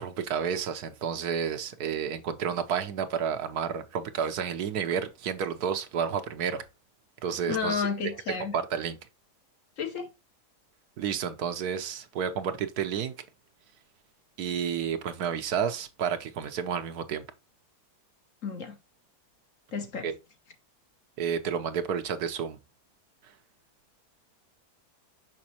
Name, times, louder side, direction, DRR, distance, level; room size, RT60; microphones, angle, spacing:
voice 1, 0.0-6.6 7.2-7.9 8.5-9.0 11.0-13.1 14.4-17.2 20.0-20.2 21.2-22.6, right 7 dB, 70° right, 1.2 m, -30 dB
voice 2, 7.5-8.6 9.8-10.1 18.4-18.8 19.7-20.1, left 5 dB, 55° left, 1.2 m, -31 dB
6.2 x 5.7 x 2.8 m
omnidirectional pair, 1.8 m